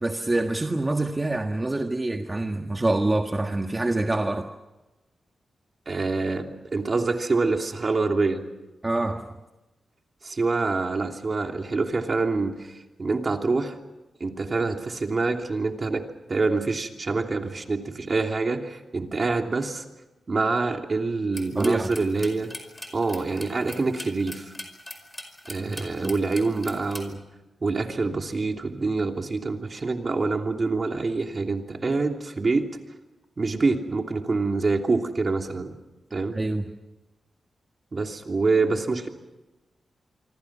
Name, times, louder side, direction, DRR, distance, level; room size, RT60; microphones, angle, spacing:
voice 1, 0.0-4.5 8.8-9.2 21.6-21.9 25.6-25.7 26.0-26.1 36.3-36.6, right 2 dB, 25° right, 4 dB, 1.6 m, -26 dB
voice 2, 5.9-8.4 10.2-13.7 14.2-16.0 16.3-19.8 20.3-22.5 22.9-24.5 25.5-27.2 27.6-32.7 33.4-35.7 36.1-36.4 37.9-39.1, right 3 dB, 45° right, 4 dB, 2.9 m, -26 dB
sound 1, 21.3-27.1, left 1 dB, 10° left, 5.1 m, -41 dB
26.5 x 25.0 x 6.1 m, 1.1 s
cardioid pair, 75°, 0 cm